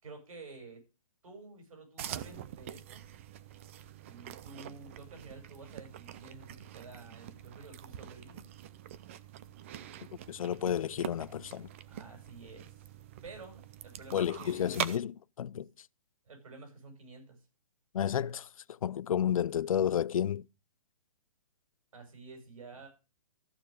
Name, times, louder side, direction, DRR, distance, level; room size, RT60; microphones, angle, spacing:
voice 1, 0.0-0.8 1.2-3.0 4.0-8.4 11.9-12.8 13.2-14.9 16.3-17.4 21.9-22.9, right 3 dB, 70° right, 6.3 m, -50 dB
sound 1, 2.0-15.0, right 11 dB, 20° right, 0.5 m, -44 dB
voice 2, 10.3-11.7 14.1-15.7 17.9-18.5 18.8-20.4, left 9 dB, 70° left, 0.5 m, -31 dB
14.0 x 6.8 x 4.9 m
hypercardioid pair, 165°, 18 cm